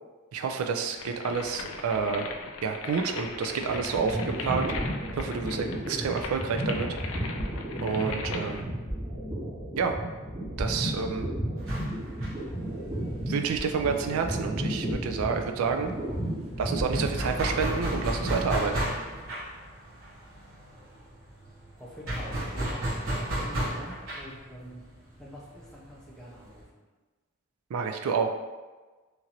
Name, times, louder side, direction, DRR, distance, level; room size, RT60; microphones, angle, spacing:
voice 1, 0.3-2.3 2.6-4.7 5.1-6.9 7.8-8.7 9.8-10.0 10.6-11.3 13.3-15.9 16.6-18.7 27.7-28.3, right 5 dB, 85° right, 5 dB, 0.3 m, -29 dB
sound 1, 0.9-8.6, left 4 dB, 65° left, 0.3 m, -39 dB
sound 2, 3.3-18.7, right 1 dB, 25° right, 0.8 m, -33 dB
sound 3, 11.6-15.0 15.2-15.4 15.6-26.6, right 1 dB, 65° right, 1.0 m, -34 dB
voice 2, 21.8-24.8 25.2-26.8, equal, 5° left, -6 dB, 0.5 m, -45 dB
2.9 x 2.5 x 2.8 m, 1.3 s
head